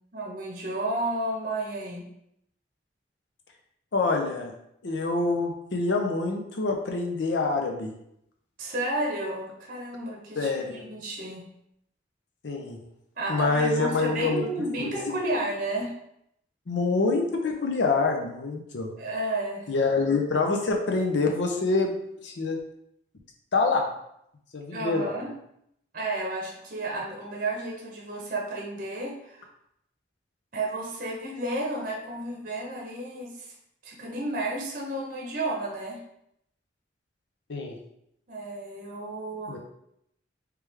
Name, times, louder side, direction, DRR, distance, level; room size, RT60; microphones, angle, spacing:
voice 1, 0.1-2.1 8.6-11.4 13.2-15.9 19.0-19.7 24.7-25.3 25.9-29.5 30.5-33.5 33.8-36.0 38.3-39.6, right 2 dB, 45° right, -1 dB, 0.8 m, -32 dB
voice 2, 3.9-4.5 4.8-7.9 10.4-10.8 12.4-12.8 13.3-14.5 14.8-14.9 16.7-18.9 19.7-21.9 22.2-22.6 23.5-23.9 24.5-25.1 37.5-37.8 39.5-39.6, left 3 dB, 70° left, 2 dB, 0.6 m, -26 dB
3.3 x 3.3 x 3.3 m, 0.76 s
head